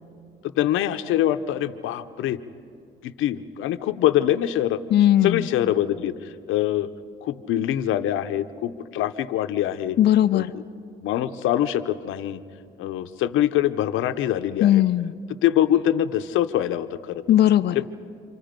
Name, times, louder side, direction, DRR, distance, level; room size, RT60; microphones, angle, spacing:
voice 1, 0.5-2.4 3.0-4.8 5.2-6.9 7.2-10.0 10.3-10.6 11.0-12.4 12.8-14.8 15.4-17.2 17.7-17.9, left 12 dB, 90° left, 10 dB, 0.8 m, -24 dB
voice 2, 4.9-5.5 10.0-10.5 14.6-15.1 17.3-17.8, left 12 dB, 55° left, 8 dB, 0.5 m, -18 dB
29.5 x 25.0 x 5.2 m, 2.4 s
cardioid pair, 90°, 20 cm